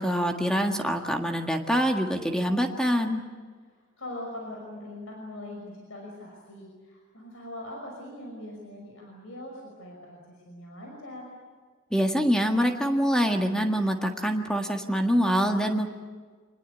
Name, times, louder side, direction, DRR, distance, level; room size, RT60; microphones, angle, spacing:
voice 1, 0.0-3.2 11.9-15.9, equal, 5° left, 3 dB, 1.6 m, -25 dB
voice 2, 4.0-11.3, left 1 dB, 70° left, 0 dB, 5.6 m, -41 dB
26.0 x 20.5 x 8.3 m, 1.5 s
head